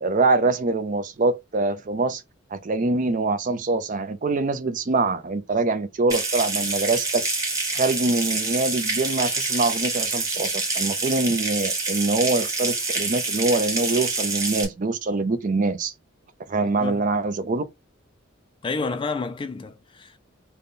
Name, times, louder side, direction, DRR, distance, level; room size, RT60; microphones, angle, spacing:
voice 1, 0.0-2.2 2.5-7.2 7.7-15.9 16.5-17.6, right 3 dB, 40° right, 0.4 m, -24 dB
Water tap faucet / Sink (filling or washing) / Trickle dribble, 6.1-14.6, right 3 dB, 15° right, 1.0 m, -27 dB
voice 2, 16.6-17.0 18.6-20.2, left 4 dB, 25° left, 0.3 m, -30 dB
3.4 x 2.2 x 3.9 m
head